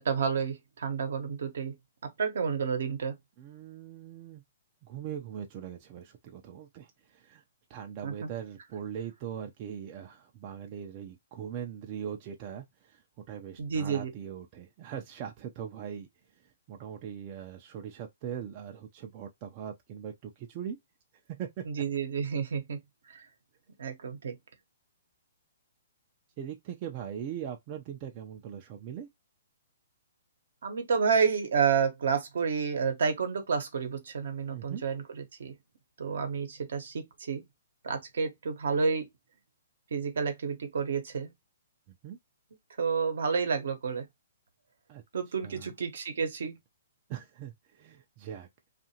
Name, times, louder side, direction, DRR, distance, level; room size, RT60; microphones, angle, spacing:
voice 1, 0.0-1.7 2.0-3.2 8.0-8.3 13.6-14.1 21.6-22.8 23.1-23.3 23.8-24.4 30.6-35.5 36.0-37.4 37.8-39.1 39.9-41.3 42.8-44.1 45.1-46.6, right 6 dB, 70° right, 0.9 m, -30 dB
voice 2, 3.4-4.4 4.9-7.4 7.7-13.0 13.3-16.1 16.7-20.8 21.4-21.6 26.4-29.1 34.5-34.8 42.0-42.2 44.9-45.0 45.4-45.7 47.1-48.5, right 9 dB, 35° right, 0.5 m, -40 dB
2.7 x 2.5 x 2.7 m
hypercardioid pair, 140°, 0 cm